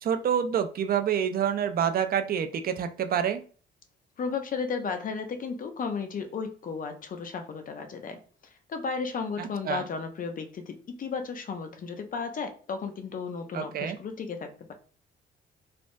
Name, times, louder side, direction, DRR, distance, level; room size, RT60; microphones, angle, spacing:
voice 1, 0.0-3.4 9.4-9.8 13.5-14.0, right 8 dB, 50° right, 8 dB, 0.4 m, -27 dB
voice 2, 4.2-14.7, left 5 dB, 45° left, 6 dB, 0.6 m, -34 dB
3.3 x 2.0 x 2.5 m, 0.40 s
cardioid pair, 90°, 20 cm